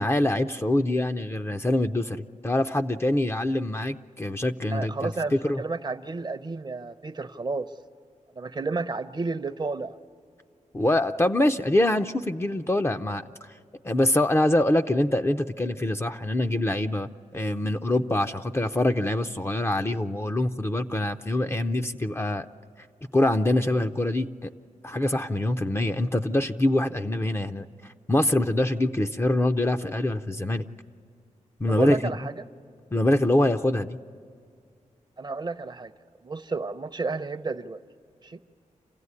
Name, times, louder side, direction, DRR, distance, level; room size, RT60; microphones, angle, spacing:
voice 1, 0.0-5.6 10.7-13.2 13.8-22.5 23.1-24.5 24.8-27.7 28.1-30.6 31.6-32.1 32.9-34.0, left 1 dB, 20° left, 6 dB, 0.6 m, -24 dB
voice 2, 4.7-7.7 8.4-9.9 31.7-32.3 35.2-35.9 36.2-37.8 38.2-38.4, right 3 dB, 35° right, 11 dB, 0.7 m, -31 dB
27.0 x 16.0 x 9.7 m, 2.3 s
wide cardioid pair, 95°, 13 cm